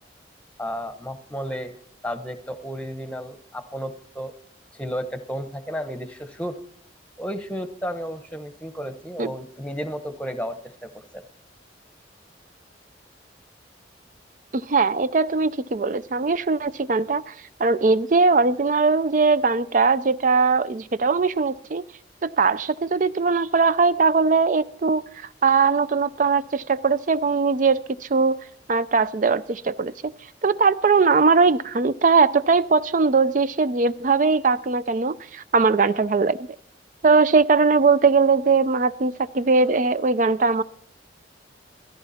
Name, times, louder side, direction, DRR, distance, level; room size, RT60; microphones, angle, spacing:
voice 1, 0.6-1.8 2.0-4.3 4.7-6.6 7.2-11.2, equal, 5° left, 1.0 m, -33 dB
voice 2, 14.5-17.3 17.6-21.8 22.2-25.0 25.4-30.1 30.4-36.4 37.0-40.6, right 4 dB, 45° right, 0.4 m, -20 dB
17.0 x 14.0 x 4.3 m
head